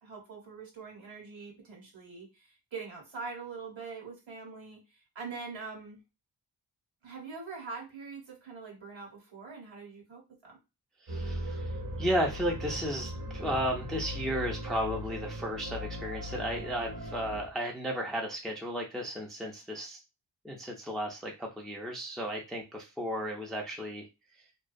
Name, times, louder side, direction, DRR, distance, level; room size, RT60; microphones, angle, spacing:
voice 1, 0.0-6.0 7.0-10.6, right 4 dB, 80° right, -1 dB, 1.1 m, -43 dB
voice 2, 11.0-11.7 12.0-20.0 20.4-24.1, equal, ahead, 0 dB, 0.4 m, -34 dB
sound 1, 11.1-17.5, equal, 45° right, 0.7 m, -38 dB
2.3 x 2.2 x 2.5 m, 0.27 s
wide cardioid pair, 70°, 46 cm